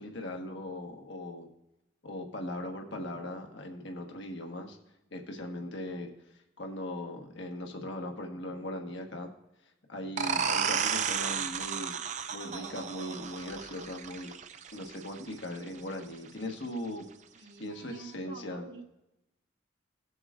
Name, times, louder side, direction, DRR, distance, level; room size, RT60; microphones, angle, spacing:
voice 1, 0.0-1.5 2.0-4.8 5.1-6.1 6.6-9.3 9.9-11.9 12.3-14.3 14.7-17.0 17.6-18.6, left 1 dB, 65° left, 2 dB, 1.4 m, -39 dB
sound 1, 10.2-15.6, right 6 dB, 35° right, 0.4 m, -33 dB
voice 2, 17.4-18.8, right 3 dB, 55° right, 1 dB, 1.3 m, -48 dB
19.0 x 7.9 x 2.5 m, 0.91 s
head